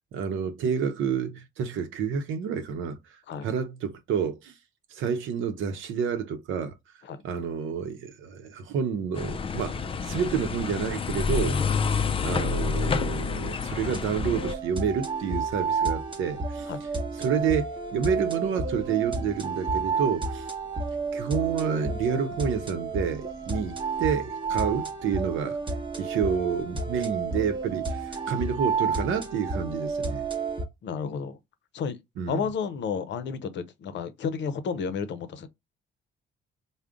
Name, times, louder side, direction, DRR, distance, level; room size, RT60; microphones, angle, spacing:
voice 1, 0.1-3.0 3.4-4.5 4.9-6.8 7.2-11.8 12.2-16.7 17.2-20.5 21.1-25.6 26.0-30.2 32.2-32.4, right 7 dB, 80° right, 0.7 m, -29 dB
sound 1, 9.2-14.5, left 5 dB, 30° left, 0.4 m, -28 dB
sound 2, 13.8-30.6, right 4 dB, 25° right, 0.9 m, -31 dB
voice 2, 30.8-31.4 31.7-32.0 32.3-35.5, left 6 dB, 65° left, 0.6 m, -31 dB
3.5 x 2.1 x 3.7 m
cardioid pair, 90°, 20 cm